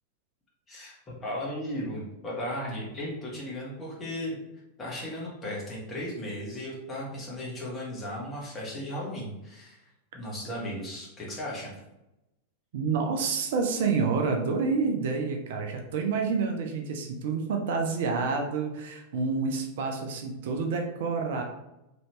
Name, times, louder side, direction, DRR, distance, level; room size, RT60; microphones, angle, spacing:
voice 1, 0.7-4.4 4.8-9.8 10.1-11.7, left 1 dB, 20° left, -4 dB, 1.3 m, -36 dB
voice 2, 12.7-21.4, right 4 dB, 55° right, 3 dB, 0.4 m, -28 dB
3.0 x 2.7 x 3.0 m, 0.91 s
figure-of-eight pair, 90°, 0 cm